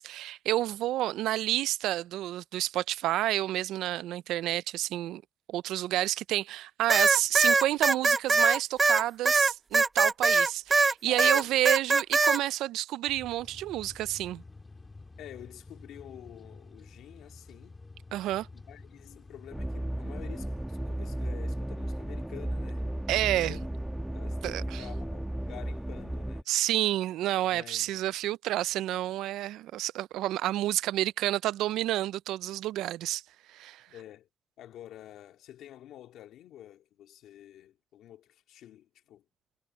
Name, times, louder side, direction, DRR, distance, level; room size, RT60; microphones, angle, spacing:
voice 1, 0.0-5.2 5.5-14.4 18.1-18.5 23.1-23.6 24.4-24.8 26.5-33.2 33.5-33.8, right 14 dB, 90° right, 0.3 m, -29 dB
sound 1, 6.9-10.9 11.2-12.4, right 3 dB, 35° right, 0.5 m, -22 dB
voice 2, 11.1-11.6 15.2-17.8 18.5-22.9 23.5-23.7 24.1-26.5 27.4-28.0 33.9-34.3 34.6-39.2, left 12 dB, 85° left, 2.4 m, -48 dB
sound 2, 13.1-19.5, left 3 dB, 30° left, 2.3 m, -50 dB
sound 3, 19.5-26.4, right 1 dB, 10° right, 1.1 m, -34 dB
cardioid pair, 65°, 0 cm